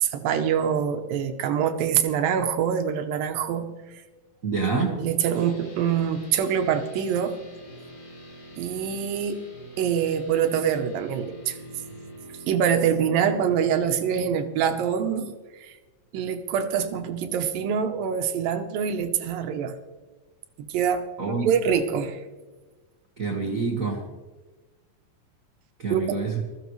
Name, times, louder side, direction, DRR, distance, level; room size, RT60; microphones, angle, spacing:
voice 1, 0.0-3.7 4.9-7.4 8.6-9.4 9.8-11.6 12.5-15.3 15.6-15.7 16.1-19.7 20.6-22.2 25.9-26.2, right 8 dB, 85° right, 8 dB, 2.7 m, -25 dB
voice 2, 4.4-4.9 21.2-21.5 23.2-24.0 25.8-26.3, right 4 dB, 65° right, 0 dB, 0.8 m, -26 dB
sound 1, 5.3-15.1, right 1 dB, 80° left, 6.5 m, -45 dB
21.5 x 14.0 x 3.2 m, 1.2 s
omnidirectional pair, 3.9 m